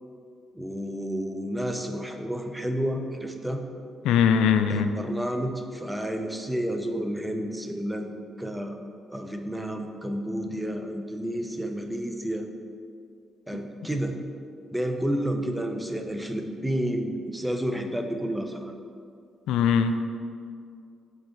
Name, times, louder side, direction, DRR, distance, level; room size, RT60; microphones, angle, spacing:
voice 1, 0.5-3.6 4.7-8.1 8.4-8.8 9.1-12.5 13.5-14.2 14.7-18.7, equal, 5° right, 5 dB, 0.6 m, -30 dB
voice 2, 4.0-4.9 19.5-20.0, left 7 dB, 90° left, 8 dB, 0.3 m, -21 dB
5.3 x 4.0 x 5.8 m, 2.3 s
cardioid pair, 90°, 0 cm